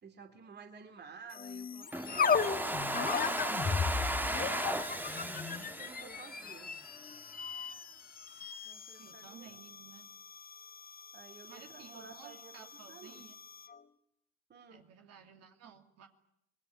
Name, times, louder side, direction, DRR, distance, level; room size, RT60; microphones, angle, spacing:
voice 1, 0.0-4.7 5.5-6.7 8.6-9.6 11.1-13.2 14.5-14.8, right 5 dB, 30° right, 6 dB, 2.8 m, -54 dB
sound 1, 1.3-13.8, left 6 dB, 25° left, 1.6 m, -37 dB
Domestic sounds home sounds, 1.9-6.9, right 1 dB, 5° right, 1.8 m, -36 dB
voice 2, 9.0-10.1 11.5-13.3 14.7-16.1, right 8 dB, 50° right, 5 dB, 2.9 m, -55 dB
25.5 x 20.0 x 9.5 m, 0.76 s
supercardioid pair, 85°, 33 cm